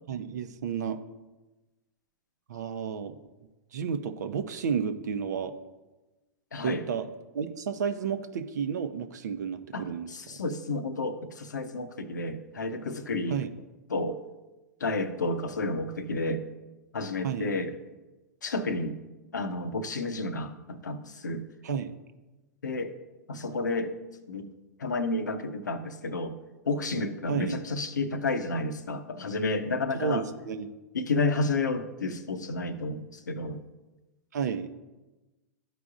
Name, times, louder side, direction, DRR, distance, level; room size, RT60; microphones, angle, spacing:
voice 1, 0.1-1.0 2.5-3.2 3.7-5.5 6.6-7.1 7.3-10.4 13.3-13.5 17.2-17.5 21.6-21.9 27.3-27.5 29.9-30.7 34.3-34.7, right 7 dB, 70° right, 9 dB, 0.7 m, -32 dB
voice 2, 6.5-6.8 9.7-13.4 13.9-14.2 14.8-16.4 16.9-17.7 18.4-19.0 19.3-21.4 22.6-22.9 23.3-23.9 24.3-24.5 24.8-26.3 26.7-30.3 30.9-33.6, left 2 dB, 80° left, 9 dB, 0.7 m, -31 dB
13.0 x 5.0 x 2.5 m, 1.1 s
hypercardioid pair, 100°, 10 cm